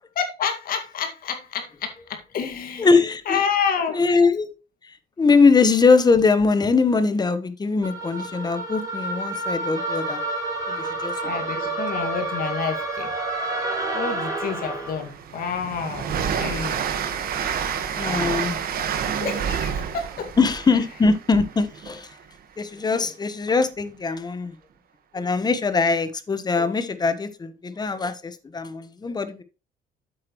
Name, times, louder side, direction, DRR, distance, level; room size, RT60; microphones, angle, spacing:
voice 1, 0.2-2.9 3.3-4.0 11.2-13.1 13.9-16.1 16.4-16.8 18.0-18.4 19.2-20.3, left 6 dB, 60° left, 2.1 m, -29 dB
voice 2, 2.8-3.4 3.9-4.5 5.2-10.2 10.7-11.1 17.9-18.6 20.4-22.1 22.6-24.6 25.1-29.4, left 4 dB, 25° left, 1.2 m, -21 dB
sound 1, 7.8-15.1, right 2 dB, 20° right, 3.7 m, -29 dB
Train, 14.0-14.1 14.5-22.2, right 7 dB, 60° right, 1.5 m, -29 dB
8.5 x 8.0 x 3.1 m
cardioid pair, 110°, 17 cm